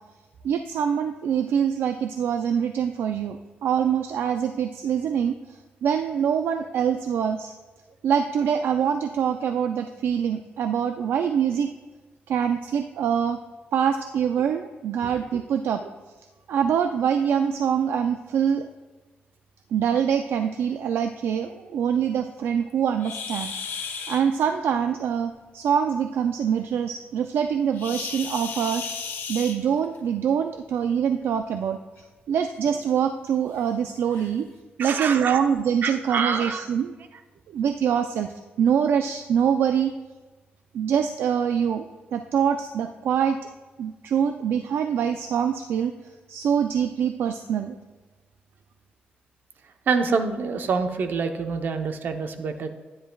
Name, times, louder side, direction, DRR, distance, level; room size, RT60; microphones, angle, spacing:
voice 1, 0.4-5.4 5.8-7.5 8.0-11.7 12.3-13.4 13.7-15.8 16.5-18.7 19.7-23.5 24.1-28.9 29.3-31.8 32.3-34.5 34.8-36.9 37.5-38.3 38.6-39.9 40.7-41.9 42.1-43.4 43.8-45.9 46.3-47.8, right 8 dB, 85° right, 7 dB, 0.4 m, -24 dB
sound 1, 23.0-24.2 27.7-30.0 31.2-31.4 32.0-32.1 32.6-32.7 33.5-33.6 34.1-34.3, left 6 dB, 90° left, 1.1 m, -34 dB
voice 2, 34.8-35.4 35.8-36.7 49.9-52.7, right 5 dB, 65° right, 6 dB, 0.8 m, -26 dB
12.5 x 9.9 x 2.3 m, 1.2 s
cardioid pair, 120°, 4 cm